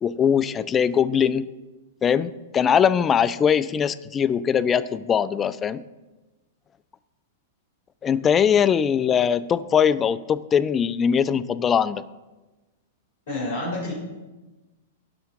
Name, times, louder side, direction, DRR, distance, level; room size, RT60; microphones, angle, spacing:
voice 1, 0.0-1.5 2.0-5.8 8.0-12.0, left 8 dB, 25° left, 16 dB, 0.4 m, -21 dB
voice 2, 13.3-13.9, left 2 dB, 60° left, -6 dB, 3.3 m, -28 dB
16.5 x 5.8 x 3.7 m, 1.1 s
figure-of-eight pair, 105°, 0 cm